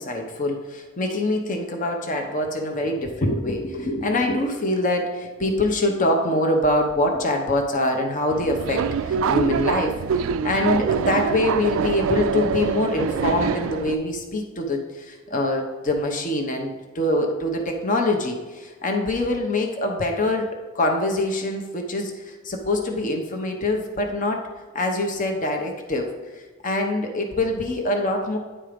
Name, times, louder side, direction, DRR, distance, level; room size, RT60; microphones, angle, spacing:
voice 1, 0.0-20.5 20.7-24.4 24.7-28.4, left 1 dB, 40° left, 2 dB, 0.9 m, -24 dB
Subway metro underground, 8.3-13.9, right 6 dB, 70° right, 0.3 m, -24 dB
10.0 x 4.5 x 5.1 m, 1.3 s
head